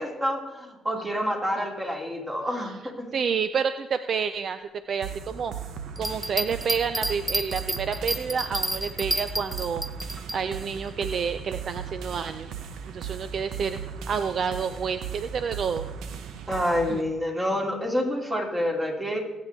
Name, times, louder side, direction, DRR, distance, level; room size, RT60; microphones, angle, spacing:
voice 1, 0.0-3.1 16.5-19.2, equal, 20° right, 0 dB, 3.0 m, -28 dB
voice 2, 3.1-4.6 4.9-5.5 6.0-9.8 10.3-12.5 12.9-13.8 14.1-15.9 16.9-17.0, right 6 dB, 55° right, 11 dB, 0.5 m, -29 dB
sound 1, 5.0-17.0, right 7 dB, 80° right, 0.9 m, -37 dB
sound 2, 6.0-10.4, equal, ahead, 0.6 m, -30 dB
21.5 x 8.3 x 3.6 m, 1.1 s
cardioid pair, 90°, 0 cm